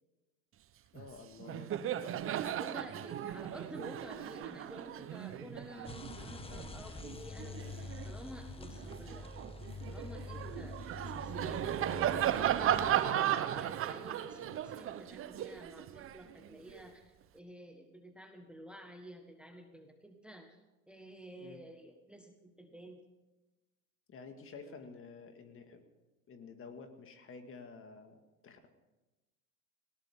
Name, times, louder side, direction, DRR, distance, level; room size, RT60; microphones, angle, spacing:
voice 1, 0.9-1.7 6.0-6.2 14.4-14.6 21.4-21.6 24.1-25.8 26.3-28.7, left 4 dB, 30° left, 6 dB, 2.0 m, -51 dB
Laughter, 1.0-1.1 1.4-8.1 8.6-16.8, right 11 dB, 30° right, 0.9 m, -36 dB
voice 2, 2.6-9.3 9.9-10.8 11.0-23.0, right 1 dB, ahead, 5 dB, 1.5 m, -51 dB
sound 1, 5.8-13.0, left 3 dB, 15° left, 1.2 m, -46 dB
18.5 x 18.0 x 3.7 m, 1.1 s
hypercardioid pair, 100°, 41 cm